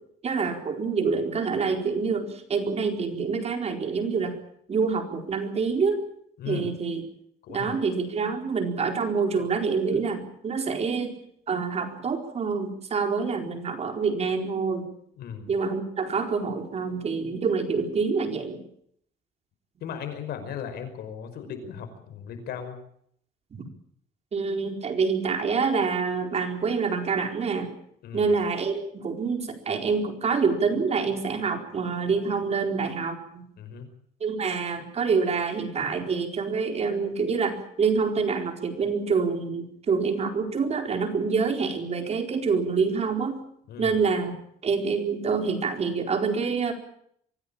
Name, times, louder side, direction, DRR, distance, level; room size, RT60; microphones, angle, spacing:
voice 1, 0.2-4.3 4.7-6.0 6.4-7.0 7.5-11.2 11.5-14.9 15.5-18.6 23.5-23.6 24.3-27.7 28.1-33.5 34.2-43.4 43.8-44.3 44.6-46.7, right 5 dB, 40° right, 5 dB, 4.5 m, -26 dB
voice 2, 6.4-6.7 7.4-7.7 9.9-10.0 15.2-15.5 19.8-22.8 28.0-28.3 33.6-33.9 43.7-44.0, left 8 dB, 70° left, 8 dB, 5.6 m, -37 dB
24.5 x 16.5 x 8.9 m, 0.68 s
cardioid pair, 110°, 17 cm